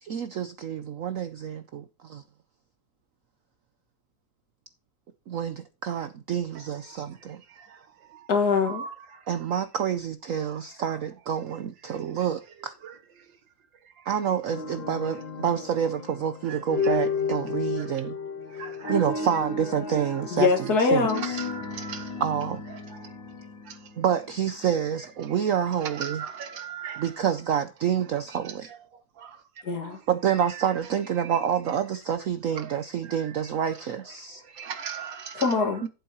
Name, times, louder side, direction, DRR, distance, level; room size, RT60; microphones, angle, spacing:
voice 1, 0.0-2.2 5.3-7.4 9.3-12.7 14.1-18.1 18.9-21.4 22.2-22.6 24.0-26.3 27.0-28.7 30.1-34.4 35.8-35.9, right 8 dB, 65° right, 0.8 m, -28 dB
voice 2, 8.3-8.8 20.3-21.3 29.6-30.0 35.3-35.8, left 4 dB, 55° left, 2.1 m, -23 dB
sound 1, 14.5-24.5, left 5 dB, 90° left, 2.1 m, -33 dB
voice 3, 18.6-19.0 21.4-22.1 26.0-27.0 29.2-29.3 34.6-35.4, right 7 dB, 80° right, 2.0 m, -36 dB
13.0 x 7.8 x 2.8 m
omnidirectional pair, 2.0 m